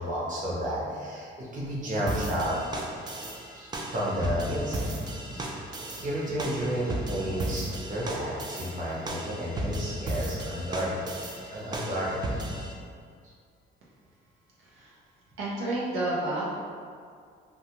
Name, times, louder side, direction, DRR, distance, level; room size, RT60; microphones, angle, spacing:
voice 1, 0.0-2.6 3.6-4.8 5.6-11.0 11.5-12.2, equal, 40° right, -6 dB, 0.8 m, -31 dB
sound 1, 2.1-12.7, right 1 dB, 20° right, 0.3 m, -35 dB
voice 2, 14.6-15.0 15.4-16.4, right 2 dB, 85° right, -6 dB, 0.6 m, -31 dB
2.4 x 2.3 x 2.9 m, 2.2 s
cardioid pair, 90°, 20 cm